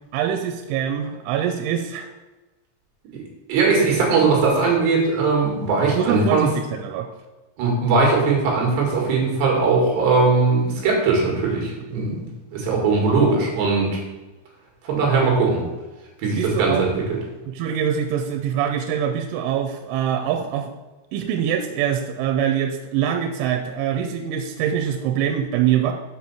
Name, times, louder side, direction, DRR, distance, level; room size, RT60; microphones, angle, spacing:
voice 1, 0.1-2.1 6.0-7.1 16.4-16.9 17.5-20.7 21.1-25.9, right 9 dB, 90° right, 5 dB, 3.1 m, -24 dB
voice 2, 3.5-6.5 7.6-14.0 14.8-15.6 16.2-17.2, right 4 dB, 65° right, -1 dB, 3.8 m, -20 dB
7.9 x 5.1 x 7.0 m, 1.1 s
omnidirectional pair, 5.5 m